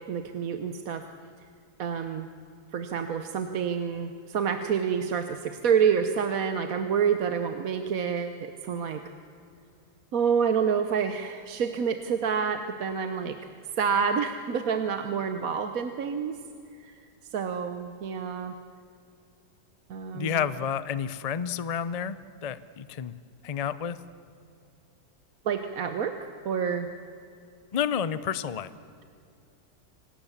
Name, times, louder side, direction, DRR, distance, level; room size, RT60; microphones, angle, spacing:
voice 1, 0.1-1.0 1.8-2.3 2.7-9.0 10.1-13.4 13.8-16.4 16.8-16.9 17.3-18.5 19.9-20.4 25.4-26.9, right 7 dB, 60° right, 8 dB, 1.3 m, -28 dB
voice 2, 20.1-23.1 23.4-24.0 27.7-28.7, left 8 dB, 80° left, 15 dB, 0.3 m, -30 dB
25.5 x 19.0 x 7.2 m, 2.4 s
omnidirectional pair, 1.8 m